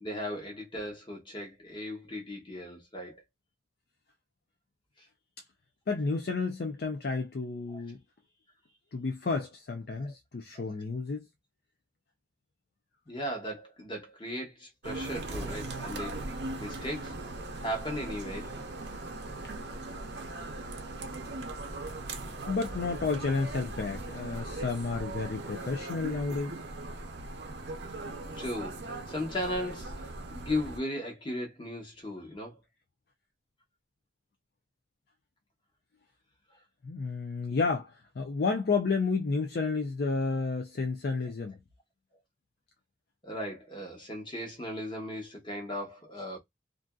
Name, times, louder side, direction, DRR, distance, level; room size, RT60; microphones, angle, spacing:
voice 1, 0.0-3.2 7.7-7.8 10.0-10.1 13.1-16.2 16.6-17.2 17.6-18.6 28.4-32.6 43.2-46.4, left 1 dB, 25° left, 1.1 m, -37 dB
voice 2, 5.9-8.0 8.9-11.3 21.1-21.2 22.5-26.6 36.8-41.6, left 4 dB, 60° left, 0.4 m, -31 dB
sound 1, 14.8-30.8, right 2 dB, 65° right, 0.6 m, -39 dB
Thunder, 15.0-25.8, equal, 15° right, 0.8 m, -49 dB
2.6 x 2.5 x 2.2 m
head